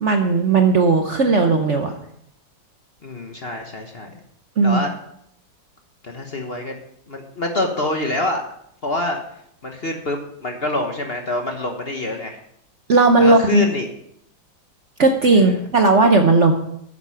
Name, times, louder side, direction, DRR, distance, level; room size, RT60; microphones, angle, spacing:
voice 1, 0.0-1.9 4.6-4.8 12.9-13.6 15.0-16.5, right 3 dB, 50° right, 5 dB, 1.0 m, -15 dB
voice 2, 3.0-4.1 4.6-4.9 6.0-6.7 7.1-8.4 8.8-9.2 9.6-12.4 13.2-13.9 15.3-15.6, left 1 dB, 40° left, 3 dB, 1.1 m, -26 dB
9.6 x 8.4 x 5.7 m, 0.71 s
omnidirectional pair, 2.0 m